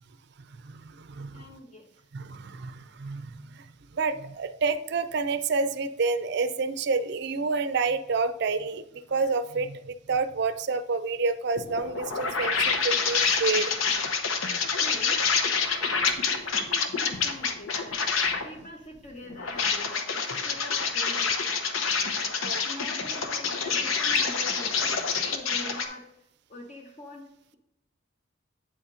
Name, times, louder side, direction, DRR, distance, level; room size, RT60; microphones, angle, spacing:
voice 1, 0.6-1.4 2.1-3.7 3.9-13.7 22.4-22.7, right 4 dB, 55° right, 12 dB, 0.5 m, -29 dB
voice 2, 1.3-1.9 14.8-15.2 15.7-18.0 18.4-22.2 22.6-24.9 25.3-26.1 26.5-27.2, left 1 dB, 35° left, 0 dB, 0.7 m, -44 dB
sound 1, 11.5-18.5 19.3-25.8, left 5 dB, 85° left, 0.8 m, -27 dB
8.8 x 4.2 x 3.7 m, 0.83 s
head